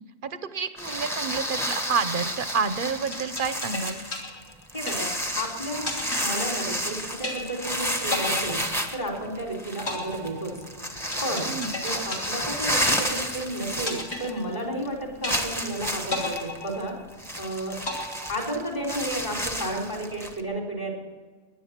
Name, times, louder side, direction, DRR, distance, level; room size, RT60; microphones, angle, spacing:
voice 1, 0.2-4.0 11.4-11.7, right 5 dB, 50° right, 12 dB, 0.9 m, -29 dB
sound 1, 0.8-14.5 14.8-14.9 15.2-20.4, equal, ahead, 1.2 m, -31 dB
sound 2, 3.1-5.4 5.9-6.9 7.2-7.8 8.1-9.4 9.9-13.4 13.9-14.9 15.2-15.8 16.1-17.4 17.9-18.9, left 3 dB, 60° left, 3.2 m, -34 dB
voice 2, 4.7-5.1 5.4-8.6 8.9-10.6 11.2-11.5 11.8-17.0 17.4-17.8 18.3-21.0, right 1 dB, 35° left, 0 dB, 3.8 m, -32 dB
18.0 x 10.5 x 7.3 m, 1.4 s
omnidirectional pair, 1.3 m